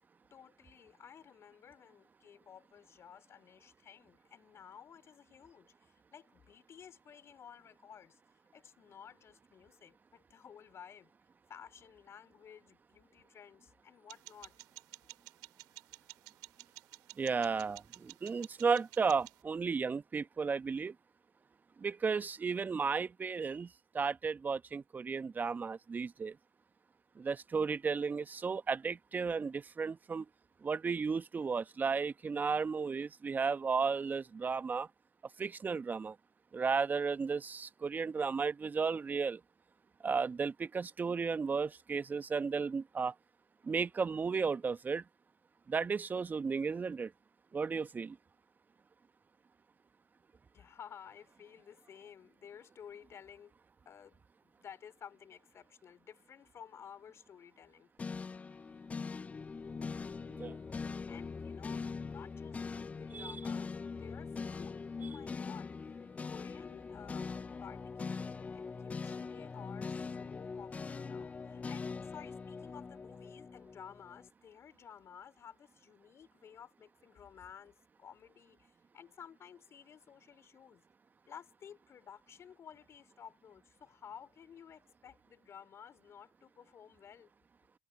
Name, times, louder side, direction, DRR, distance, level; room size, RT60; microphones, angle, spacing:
voice 1, 0.3-8.2 8.5-11.1 11.5-14.6 50.5-53.5 53.9-57.9 61.1-65.7 66.2-80.8 81.3-87.3, left 8 dB, 40° left, 3.6 m, -54 dB
sound 1, 14.1-19.4, right 25 dB, 65° right, 4.7 m, -53 dB
voice 2, 17.2-20.9 21.8-23.7 23.9-26.3 27.2-30.2 30.6-34.9 35.4-36.1 36.5-39.4 40.0-43.1 43.6-45.0 45.7-47.1 47.5-48.2 60.4-60.6 63.1-63.3, right 5 dB, 25° right, 1.2 m, -34 dB
sound 2, 58.0-74.3, left 5 dB, 20° left, 0.3 m, -42 dB
hypercardioid pair, 70°, 7 cm